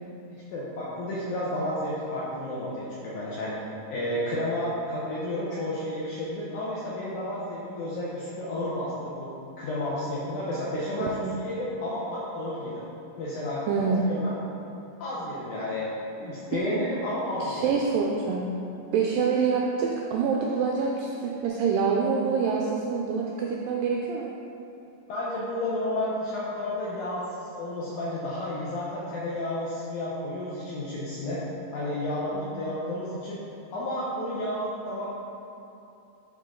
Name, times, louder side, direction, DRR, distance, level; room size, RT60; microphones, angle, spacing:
voice 1, 0.5-3.6 3.9-9.3 9.6-12.8 13.2-13.6 14.1-14.3 15.0-15.9 16.2-17.6 25.1-31.4 31.7-33.4 33.7-35.1, left 1 dB, 75° left, -7 dB, 1.8 m, -31 dB
voice 2, 11.0-11.4 13.7-14.1 16.5-16.6 17.4-18.5 18.9-24.3 32.3-32.5, right 5 dB, 85° right, -1 dB, 2.0 m, -26 dB
10.5 x 3.7 x 3.7 m, 2.7 s
omnidirectional pair, 4.5 m